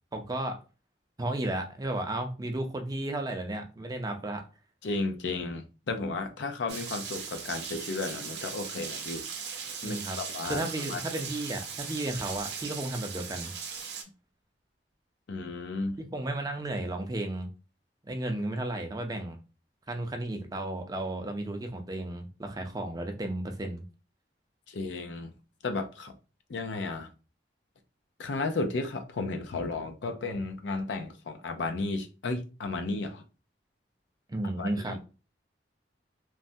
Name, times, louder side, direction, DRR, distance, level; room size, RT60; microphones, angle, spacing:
voice 1, 0.1-0.6 1.2-4.4 9.8-10.2 10.5-13.5 16.0-17.5 18.0-19.4 19.9-23.8 34.3-35.0, right 1 dB, 20° right, 0.4 m, -33 dB
voice 2, 4.8-9.2 9.8-11.0 15.3-16.0 24.7-25.3 25.6-26.1 26.5-27.1 28.2-33.2 34.6-35.0, left 3 dB, 90° left, 0.5 m, -33 dB
Rain, 6.7-14.0, right 6 dB, 70° right, 0.6 m, -38 dB
3.1 x 2.1 x 2.6 m
head